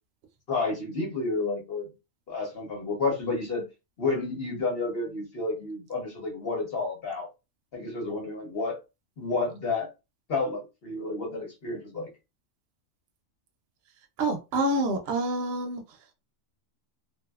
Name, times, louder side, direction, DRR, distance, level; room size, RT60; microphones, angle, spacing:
voice 1, 0.5-1.9 2.3-3.6 4.0-7.3 7.7-8.8 9.2-9.9 10.3-12.1, left 3 dB, 50° left, 1.1 m, -30 dB
voice 2, 14.2-15.8, right 1 dB, 60° right, 0.7 m, -27 dB
2.7 x 2.5 x 2.3 m
omnidirectional pair, 1.4 m